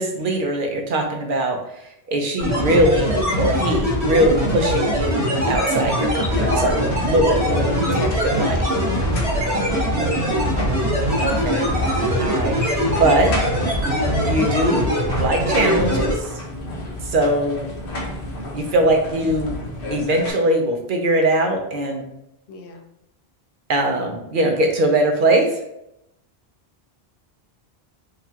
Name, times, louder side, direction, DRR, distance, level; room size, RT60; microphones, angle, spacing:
voice 1, 0.0-1.6 2.1-8.0 8.4-8.6 10.0-10.2 11.2-11.7 12.2-13.3 14.3-14.8 15.2-16.3 17.0-17.7 18.5-19.6 19.9-22.1 23.7-25.5, right 1 dB, 55° right, 2 dB, 0.8 m, -21 dB
sound 1, 2.4-16.2, equal, 75° right, 1.6 m, -22 dB
sound 2, 6.3-20.3, left 1 dB, 60° left, 1.0 m, -31 dB
voice 2, 7.9-9.6 22.5-22.8, left 1 dB, 85° left, 4 dB, 0.9 m, -35 dB
4.9 x 2.4 x 2.8 m, 0.82 s
omnidirectional pair, 1.1 m